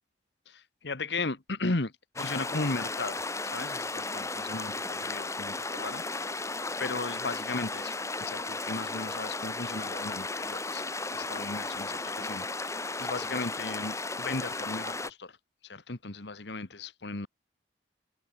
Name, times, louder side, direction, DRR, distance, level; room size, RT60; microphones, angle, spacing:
voice 1, 0.5-6.5 6.8-10.8 11.1-15.4 15.6-17.3, left 3 dB, 65° left, 1.4 m, -36 dB
sound 1, 2.2-15.1, left 3 dB, 15° left, 2.5 m, -35 dB
head